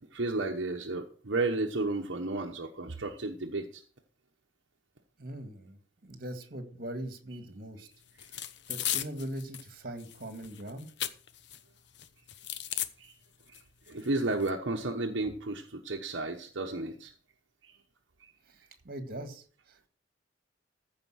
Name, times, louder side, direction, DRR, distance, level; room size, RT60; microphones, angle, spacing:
voice 1, 0.1-3.8 13.0-13.1 13.5-13.6 13.9-17.1 17.6-17.8 18.2-18.3, right 2 dB, 75° right, 2 dB, 1.1 m, -33 dB
voice 2, 5.2-7.9 8.7-10.9 18.5-19.9, right 1 dB, 50° right, 7 dB, 1.9 m, -41 dB
sound 1, 8.2-9.7 10.0-11.6 11.9-12.9 13.5-13.6 13.9-14.5, left 11 dB, 65° left, 0.8 m, -36 dB
15.0 x 5.3 x 6.3 m, 0.43 s
head